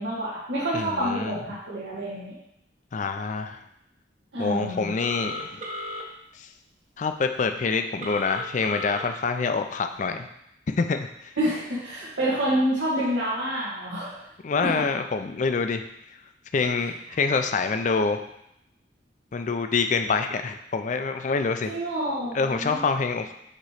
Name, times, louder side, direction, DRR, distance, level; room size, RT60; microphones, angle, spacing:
voice 1, 0.0-2.3 4.3-4.9 11.4-14.1 14.6-14.8 21.7-22.8, right 1 dB, 85° right, -9 dB, 1.6 m, -28 dB
voice 2, 0.7-1.4 2.9-3.6 4.4-5.6 6.4-6.5 7.0-10.3 10.8-11.3 14.4-15.8 16.5-18.2 19.3-21.7 22.3-23.3, left 4 dB, 40° left, 7 dB, 0.4 m, -26 dB
Telephone, 5.0-6.0 8.0-9.0, left 1 dB, 40° right, 0.9 m, -34 dB
6.6 x 3.0 x 4.9 m, 0.79 s
head